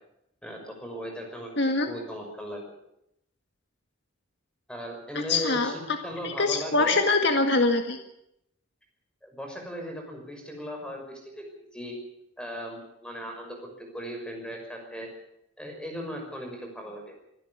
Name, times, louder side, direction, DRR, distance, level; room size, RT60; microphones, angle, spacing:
voice 1, 0.4-2.7 4.7-7.0 9.2-11.5 11.7-12.0 12.4-15.1 15.6-17.1, equal, 5° left, 2 dB, 5.9 m, -38 dB
voice 2, 1.6-1.9 5.1-5.7 6.2-8.0, left 3 dB, 60° left, 5 dB, 1.9 m, -24 dB
25.0 x 12.0 x 9.5 m, 0.81 s
head